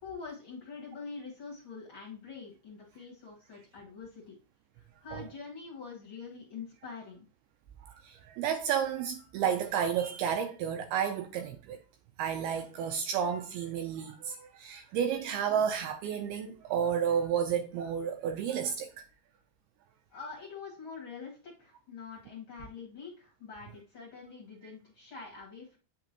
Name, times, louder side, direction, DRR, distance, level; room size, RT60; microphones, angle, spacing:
voice 1, 0.0-4.3 4.8-7.3 20.1-25.8, left 5 dB, 55° left, 1.4 m, -45 dB
voice 2, 7.8-11.8 12.2-19.0, right 8 dB, 85° right, 2.3 m, -31 dB
8.7 x 6.1 x 2.9 m
omnidirectional pair, 4.9 m